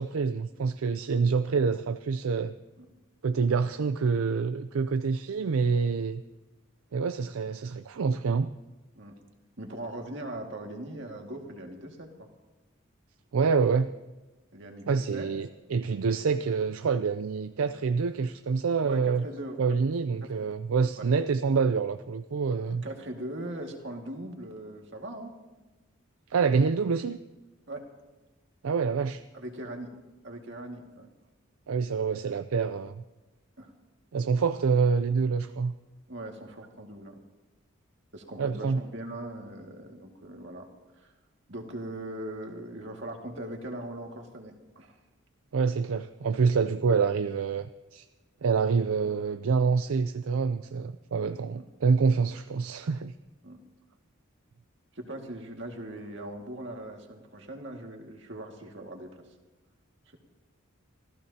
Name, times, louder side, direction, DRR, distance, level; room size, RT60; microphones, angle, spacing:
voice 1, 0.0-2.5 3.2-6.2 6.9-8.5 13.3-13.9 14.9-19.2 19.6-22.8 26.3-27.2 28.6-29.2 31.7-32.9 34.1-35.7 38.4-38.8 45.5-48.0 48.4-53.2, right 5 dB, 75° right, 10 dB, 0.4 m, -26 dB
voice 2, 9.6-12.3 14.5-15.3 18.8-19.8 20.2-20.4 21.0-21.1 22.7-25.3 27.7-27.9 29.3-29.9 30.2-31.1 33.6-33.7 36.1-37.2 38.1-40.7 41.0-41.1 41.5-45.0 51.5-51.6 53.4-53.6 54.9-59.2, right 1 dB, 55° right, 2 dB, 2.1 m, -40 dB
25.5 x 15.5 x 2.9 m, 1.1 s
head